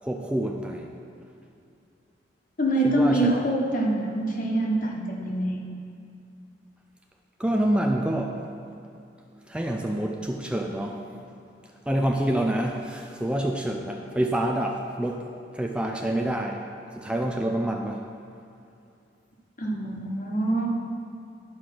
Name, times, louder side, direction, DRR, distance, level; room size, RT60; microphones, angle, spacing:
voice 1, 0.0-0.9 2.8-3.3 7.4-8.4 9.5-11.0 11.9-15.2 15.5-16.7 17.0-18.0, right 1 dB, 5° right, 2 dB, 0.4 m, -27 dB
voice 2, 2.6-5.5 19.6-20.7, right 1 dB, 50° left, 0 dB, 1.3 m, -25 dB
11.5 x 4.9 x 5.9 m, 2.6 s
head